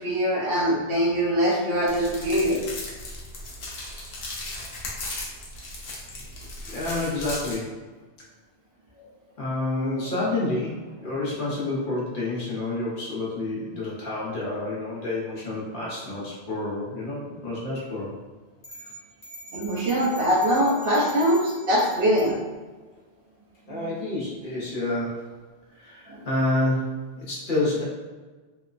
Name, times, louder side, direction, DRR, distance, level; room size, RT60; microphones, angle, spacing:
voice 1, 0.0-2.6 19.5-22.4 23.7-23.9 26.1-26.3, equal, 65° right, -4 dB, 0.9 m, -23 dB
sound 1, 1.9-7.5, left 2 dB, 80° left, 0.9 m, -37 dB
voice 2, 6.7-7.8 9.4-18.1 18.8-18.9 23.7-25.2 25.8-27.0 27.3-27.8, left 2 dB, 55° left, -6 dB, 0.9 m, -29 dB
sound 2, 18.6-22.3, right 1 dB, 25° left, 1.0 m, -44 dB
3.0 x 2.0 x 2.4 m, 1.3 s
omnidirectional pair, 1.1 m